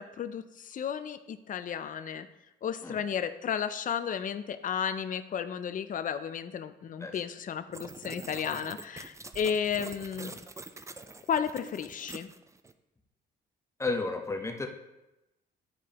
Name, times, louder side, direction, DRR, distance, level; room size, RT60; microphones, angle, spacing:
voice 1, 0.0-2.3 2.6-10.4 11.3-12.3, left 7 dB, 40° left, 11 dB, 0.5 m, -33 dB
sound 1, 7.7-12.7, right 3 dB, 15° right, 0.4 m, -45 dB
voice 2, 13.8-14.7, left 3 dB, 15° left, 4 dB, 0.8 m, -32 dB
10.0 x 4.6 x 3.0 m, 0.96 s
cardioid pair, 90°, 20 cm